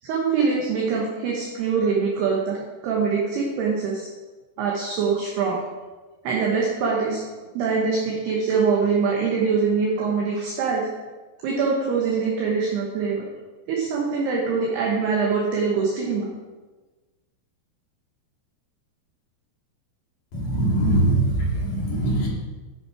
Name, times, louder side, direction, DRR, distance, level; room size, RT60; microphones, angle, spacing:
voice 1, 0.0-2.6 2.8-4.1 4.6-5.6 6.2-7.2 7.5-10.9 11.4-13.3 13.7-16.3, right 5 dB, 70° right, -2 dB, 2.8 m, -23 dB
voice 2, 20.3-22.3, right 2 dB, 50° left, -4 dB, 3.2 m, -22 dB
10.5 x 6.1 x 4.7 m, 1.2 s
omnidirectional pair, 5.6 m